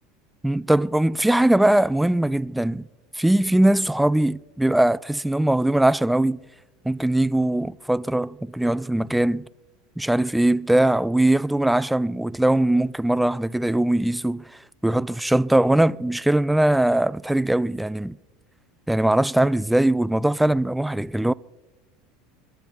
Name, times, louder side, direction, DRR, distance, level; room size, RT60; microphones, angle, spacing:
voice 1, 0.4-2.9 3.2-6.4 6.9-9.5 10.0-14.4 14.8-18.2 18.9-21.3, right 1 dB, 5° right, 0.4 m, -21 dB
29.5 x 12.0 x 4.1 m
hypercardioid pair, 75°, 0 cm